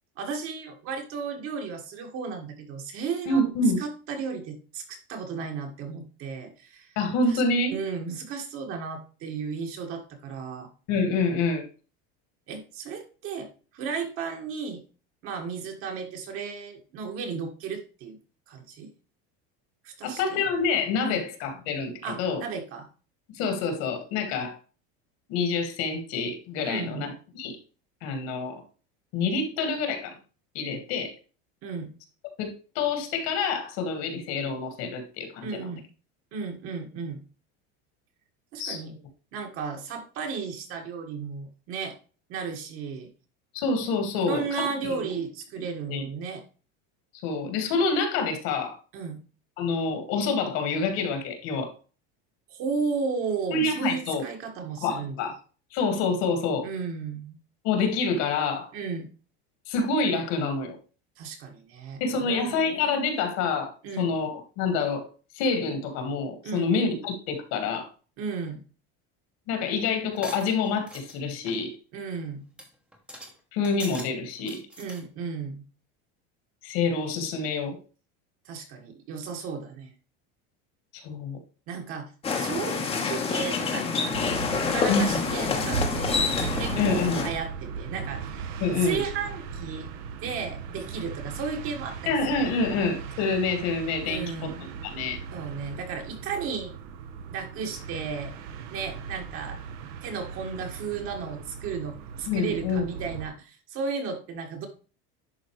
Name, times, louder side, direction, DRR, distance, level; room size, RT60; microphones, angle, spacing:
voice 1, 0.2-3.4 3.8-7.0 7.3-7.4 7.7-10.7 12.5-14.8 15.2-18.2 18.5-18.9 19.8-20.4 21.1-21.2 22.0-22.9 26.6-27.1 31.6-31.9 35.4-35.8 36.3-37.2 38.5-38.9 39.3-42.0 42.3-43.1 44.2-46.4 48.9-49.2 52.5-55.2 56.6-57.4 58.7-59.1 61.2-62.6 63.8-64.1 66.4-66.7 68.2-68.6 71.9-72.5 74.8-75.6 78.5-79.9 81.7-86.1 86.6-88.5 88.8-89.9 90.2-92.1 92.7-92.8 94.0-94.6 95.3-96.7 97.3-98.3 98.7-99.6 100.0-104.7, right 5 dB, 45° right, 3 dB, 1.9 m, -34 dB
voice 2, 3.3-3.8 7.0-7.8 10.9-11.6 20.0-21.9 22.2-22.4 23.3-24.6 25.3-27.6 28.0-28.6 29.1-30.1 30.6-31.1 32.4-35.7 38.6-38.8 43.5-44.7 45.9-46.1 47.2-48.8 49.6-51.7 53.5-54.2 54.8-55.4 55.7-56.7 57.6-58.7 59.7-60.8 62.0-63.7 64.0-65.1 65.3-67.9 69.5-71.7 73.5-74.6 76.6-77.8 80.9-81.4 84.9-85.2 86.8-87.3 88.6-89.0 92.1-95.2 102.3-102.9, left 4 dB, 55° left, 6 dB, 2.1 m, -27 dB
sound 1, 70.2-71.2 71.4-71.7 72.1-72.2 72.6-72.7 72.9-73.3 73.6-74.1 74.4-75.0, equal, 5° right, 1.1 m, -42 dB
sound 2, 82.2-87.3, left 5 dB, 20° left, 1.1 m, -27 dB
sound 3, 84.1-103.3, right 6 dB, 60° right, 1.1 m, -38 dB
11.0 x 3.9 x 3.2 m, 0.35 s
cardioid pair, 160°, 31 cm